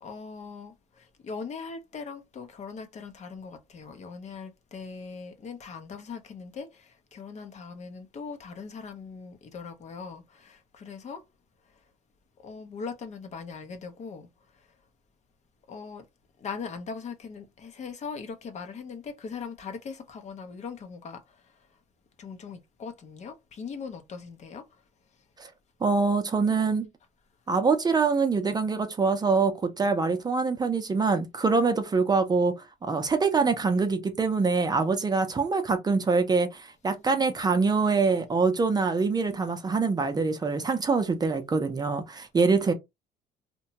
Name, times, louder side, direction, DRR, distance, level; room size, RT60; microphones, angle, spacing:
voice 1, 0.0-11.2 12.4-14.3 15.7-16.0 16.4-21.4 22.2-24.7, left 5 dB, 40° left, 0.6 m, -40 dB
voice 2, 25.8-26.9 27.5-42.7, right 4 dB, 25° right, 0.5 m, -24 dB
2.8 x 2.2 x 2.8 m
cardioid pair, 110°, 17 cm